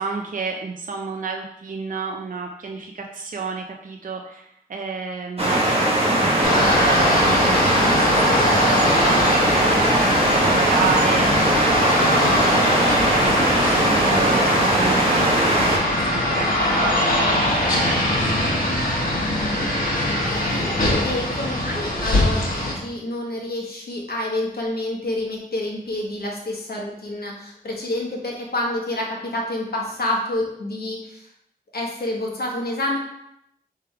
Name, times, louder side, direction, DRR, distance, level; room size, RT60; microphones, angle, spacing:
voice 1, 0.0-6.1 6.4-11.3 11.8-18.6, right 4 dB, 60° right, 2 dB, 0.4 m, -31 dB
sound 1, 5.4-15.8, right 1 dB, 40° right, 1.0 m, -19 dB
sound 2, 6.4-22.7, left 1 dB, 65° left, 1.3 m, -22 dB
Mallet percussion, 14.1-16.6, right 5 dB, ahead, 0.9 m, -38 dB
voice 2, 20.0-31.3 31.7-33.0, left 1 dB, 90° left, -1 dB, 1.0 m, -28 dB
3.4 x 3.3 x 4.6 m, 0.78 s
wide cardioid pair, 70°, 16 cm